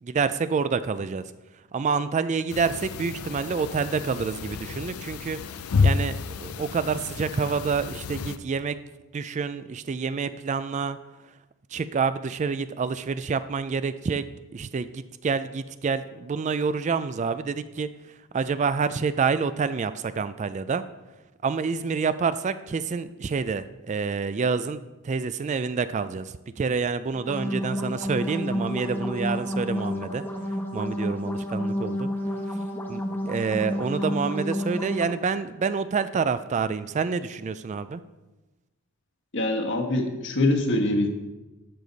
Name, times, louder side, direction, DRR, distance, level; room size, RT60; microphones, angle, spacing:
voice 1, 0.0-1.2 1.7-5.4 5.8-8.8 9.1-11.0 11.7-14.2 14.5-17.9 18.3-20.8 21.4-30.2 30.7-32.1 32.9-33.0 33.3-38.0, right 5 dB, 30° right, 13 dB, 0.3 m, -27 dB
sound 1, 2.5-8.4, left 4 dB, 75° left, 0.5 m, -30 dB
sound 2, 27.1-35.1, equal, 10° left, 1.0 m, -30 dB
voice 2, 39.3-41.1, left 2 dB, 55° left, 3 dB, 1.3 m, -24 dB
12.0 x 6.8 x 4.0 m, 1.1 s
head